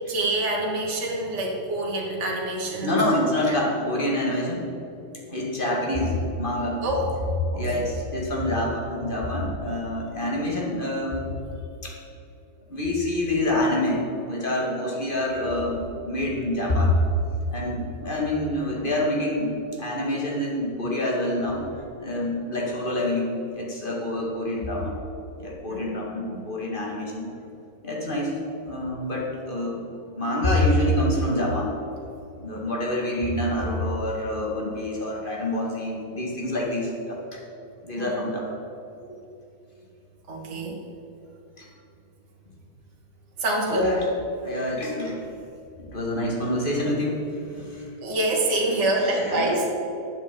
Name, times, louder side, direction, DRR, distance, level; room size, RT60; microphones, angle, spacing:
voice 1, 0.1-2.9 3.5-3.6 6.8-7.1 7.5-7.8 25.7-25.8 26.2-26.3 38.0-38.1 39.1-39.2 40.3-40.8 43.4-43.9 48.0-49.7, right 2 dB, 45° right, -2 dB, 2.0 m, -26 dB
voice 2, 2.8-4.7 5.3-6.8 7.5-11.3 11.8-12.0 12.7-17.0 17.5-25.0 25.4-27.2 27.8-28.4 28.7-29.8 30.2-31.8 32.4-37.4 37.8-38.5 41.6-41.7 43.7-45.2 45.9-47.9 49.0-49.6, left 1 dB, 30° left, -2 dB, 2.4 m, -26 dB
9.5 x 8.3 x 8.5 m, 2.8 s
omnidirectional pair, 1.8 m